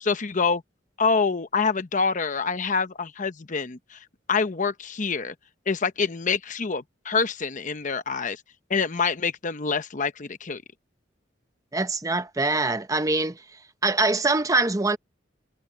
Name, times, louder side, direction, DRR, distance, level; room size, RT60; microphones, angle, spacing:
voice 1, 0.0-0.6 1.0-4.0 4.3-5.3 5.7-8.4 8.7-10.6, left 5 dB, 45° left, 0.8 m, -26 dB
voice 2, 11.7-13.4 13.8-15.0, right 3 dB, 20° right, 0.9 m, -23 dB
head